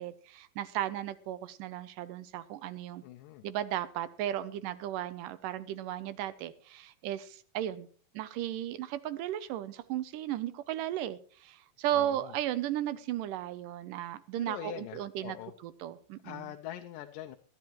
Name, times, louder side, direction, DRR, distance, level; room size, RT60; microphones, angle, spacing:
voice 1, 0.0-3.0 3.4-7.9 8.1-15.4 15.6-16.5, right 12 dB, 75° right, 14 dB, 2.2 m, -35 dB
voice 2, 3.0-3.4 11.9-12.3 14.4-15.5 16.2-17.4, left 12 dB, 75° left, 6 dB, 2.2 m, -43 dB
21.0 x 11.5 x 3.0 m, 0.42 s
omnidirectional pair, 4.1 m